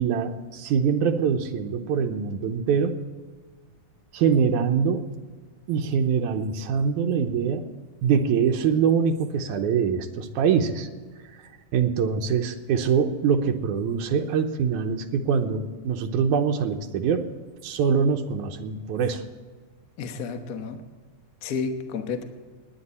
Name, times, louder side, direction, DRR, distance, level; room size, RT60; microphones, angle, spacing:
voice 1, 0.0-3.1 4.1-5.1 5.7-7.6 8.0-10.9 11.7-17.3 17.6-19.2, right 6 dB, 90° right, 5 dB, 2.3 m, -24 dB
voice 2, 20.0-20.8 21.4-22.2, left 5 dB, 70° left, 6 dB, 0.8 m, -31 dB
19.5 x 9.6 x 4.2 m, 1.5 s
omnidirectional pair, 3.4 m